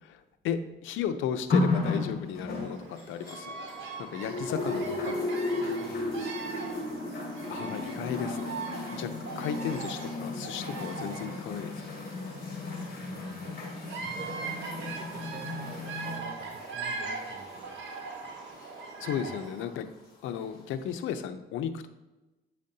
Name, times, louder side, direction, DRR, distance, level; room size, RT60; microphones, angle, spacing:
voice 1, 0.0-3.5 4.0-5.3 7.5-8.6 8.9-11.8 19.0-19.9 20.2-21.9, left 8 dB, 85° left, 10 dB, 0.6 m, -34 dB
sound 1, 1.5-3.9 4.2-18.9 19.8-19.9, left 2 dB, 50° left, 2.3 m, -34 dB
Bird vocalization bird call bird song, 2.5-19.7, right 4 dB, 65° right, 1.4 m, -41 dB
voice 2, 5.5-6.2 12.7-13.5 14.0-17.8 19.1-19.5, right 4 dB, 45° right, 4 dB, 0.9 m, -49 dB
8.3 x 5.1 x 2.8 m, 1.1 s
cardioid pair, 90°, 20 cm